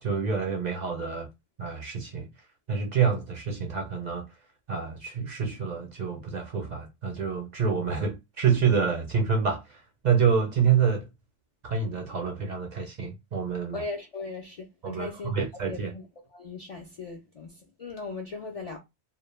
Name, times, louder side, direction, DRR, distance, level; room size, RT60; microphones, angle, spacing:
voice 1, 0.0-1.3 1.6-2.3 2.7-4.2 4.7-11.1 11.6-13.8 14.8-15.9, right 6 dB, 55° right, 0.5 m, -27 dB
voice 2, 13.7-15.3 15.7-16.0 16.3-18.8, left 3 dB, 55° left, 0.4 m, -38 dB
2.1 x 2.1 x 3.0 m
omnidirectional pair, 1.1 m